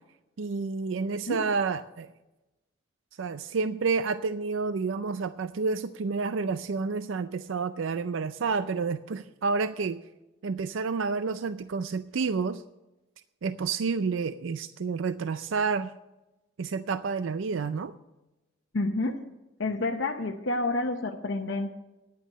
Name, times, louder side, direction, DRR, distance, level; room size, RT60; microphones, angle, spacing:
voice 1, 0.4-2.1 3.2-10.0 10.4-12.6 13.4-15.9 16.6-17.9, right 4 dB, 85° right, 12 dB, 0.4 m, -29 dB
voice 2, 18.7-19.2 19.6-21.7, left 2 dB, 75° left, 1 dB, 0.9 m, -29 dB
10.5 x 9.1 x 6.5 m, 1.0 s
head